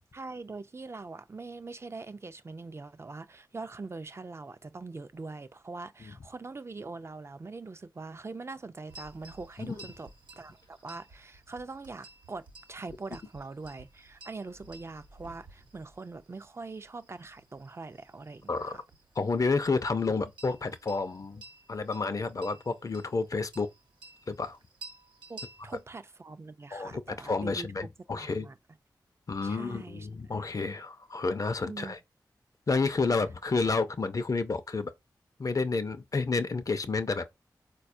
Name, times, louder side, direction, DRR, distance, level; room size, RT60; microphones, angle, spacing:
voice 1, 0.1-10.1 10.4-18.8 25.3-27.9 28.2-28.5 29.4-30.1 31.7-32.0, right 3 dB, 35° right, 0.4 m, -43 dB
sound 1, 8.9-25.8, right 3 dB, 90° right, 0.8 m, -53 dB
voice 2, 19.2-21.4 21.7-23.7 24.3-24.6 26.7-28.5 29.3-32.0 32.7-34.9 35.4-37.2, left 4 dB, 50° left, 0.5 m, -30 dB
4.1 x 2.3 x 2.5 m
cardioid pair, 40°, 8 cm